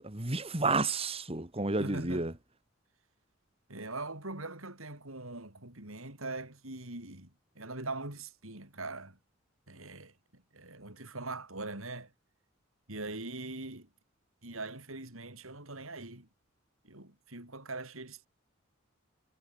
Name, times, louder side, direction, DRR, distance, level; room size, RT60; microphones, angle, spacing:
voice 1, 0.1-2.3, right 3 dB, 30° right, 2.1 m, -31 dB
voice 2, 1.8-2.3 3.7-7.3 7.5-9.2 9.7-12.1 12.9-13.9 14.4-16.3 16.9-18.3, right 2 dB, 85° right, 6.6 m, -42 dB
head